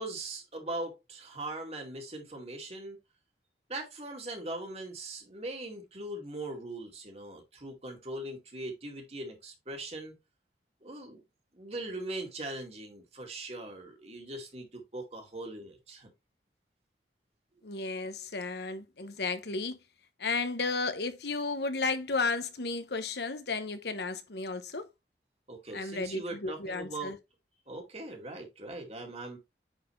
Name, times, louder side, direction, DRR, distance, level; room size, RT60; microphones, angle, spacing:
voice 1, 0.0-3.0 3.7-10.1 10.8-11.2 11.5-16.1 25.5-27.2 27.7-29.4, right 2 dB, 35° right, 2.2 m, -40 dB
voice 2, 17.6-19.8 20.2-24.9 25.7-27.2, left 3 dB, 70° left, 1.1 m, -33 dB
9.2 x 4.4 x 3.2 m
head